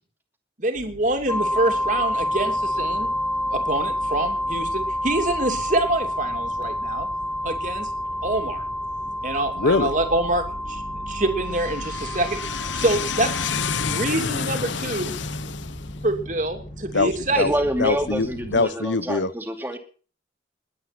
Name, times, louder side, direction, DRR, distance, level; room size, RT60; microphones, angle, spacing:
voice 1, 0.6-3.1 3.5-7.1 7.4-7.9 8.2-8.6 9.2-12.4 12.7-13.5 13.8-15.1 16.0-17.5, right 2 dB, 45° right, 5 dB, 2.9 m, -25 dB
sound 1, 0.8-18.6, equal, 40° left, 4.9 m, -39 dB
sound 2, 1.3-14.1, left 1 dB, 10° left, 1.8 m, -28 dB
voice 2, 9.6-9.9 11.8-16.0 16.9-17.5 17.8-19.3, left 4 dB, 90° left, 17 dB, 0.9 m, -26 dB
voice 3, 17.3-19.8, equal, 10° right, 5 dB, 2.6 m, -27 dB
21.5 x 9.5 x 6.1 m, 0.40 s
head